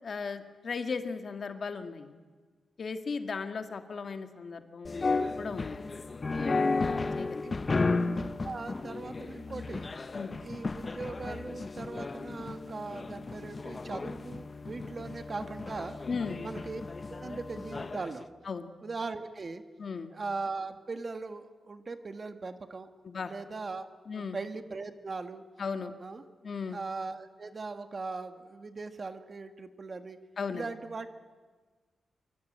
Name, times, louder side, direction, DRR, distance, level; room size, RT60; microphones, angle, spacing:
voice 1, 0.0-2.1 2.8-5.1 5.4-5.8 6.7-7.7 10.1-10.3 16.1-16.4 18.5-18.7 19.8-20.1 23.0-23.3 24.1-24.4 25.6-25.9 26.4-26.8 30.4-30.7, left 5 dB, 45° left, 7 dB, 2.0 m, -36 dB
sound 1, 4.8-18.1, left 3 dB, 25° left, 0.9 m, -34 dB
voice 2, 8.2-9.9 10.4-16.0 16.4-16.8 17.1-18.3 18.8-19.6 20.1-22.9 23.2-25.4 26.0-26.2 26.7-30.2 30.5-31.2, right 3 dB, 30° right, 9 dB, 1.6 m, -39 dB
26.0 x 23.5 x 8.9 m, 1.4 s
wide cardioid pair, 150°, 0 cm